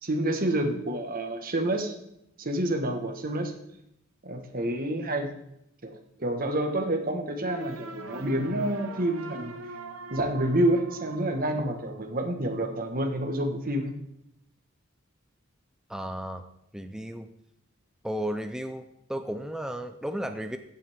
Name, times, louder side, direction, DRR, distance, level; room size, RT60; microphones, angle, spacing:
voice 1, 0.0-1.9 2.4-3.5 4.2-5.3 5.8-9.5 10.1-14.0, right 1 dB, 45° right, 4 dB, 1.4 m, -28 dB
sound 1, 7.4-12.4, right 2 dB, 75° right, 1.0 m, -42 dB
voice 2, 15.9-16.4 16.7-17.3 18.0-18.8 19.1-20.6, equal, 5° right, 7 dB, 0.5 m, -33 dB
15.0 x 8.3 x 3.6 m, 0.78 s
head